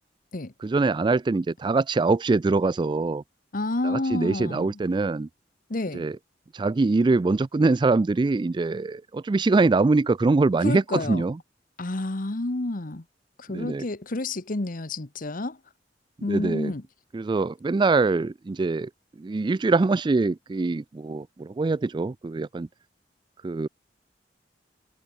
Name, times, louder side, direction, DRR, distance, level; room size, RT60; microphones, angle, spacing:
voice 1, 0.6-3.2 3.8-5.3 5.9-6.2 6.5-11.4 13.5-13.8 16.3-16.7 17.1-18.9 19.2-22.7 23.4-23.7, right 3 dB, 25° right, 0.3 m, -23 dB
voice 2, 3.5-4.8 5.7-6.0 10.6-11.2 11.8-13.0 13.4-15.6 16.2-16.8, left 2 dB, 50° left, 1.2 m, -29 dB
head